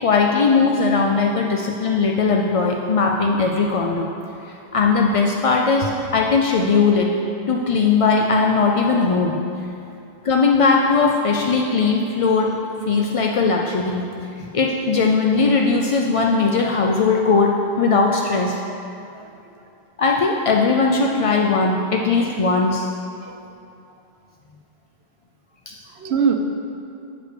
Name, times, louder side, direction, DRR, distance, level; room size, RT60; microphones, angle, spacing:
voice 1, 0.0-4.1 4.4-7.1 7.5-9.4 10.2-12.5 12.9-18.6 20.0-22.9 25.7-25.8, left 4 dB, 55° left, 0 dB, 0.4 m, -19 dB
voice 2, 19.1-19.7 23.2-23.4 25.9-26.3, right 6 dB, 75° right, 5 dB, 1.0 m, -25 dB
8.4 x 4.9 x 6.6 m, 2.6 s
omnidirectional pair, 1.1 m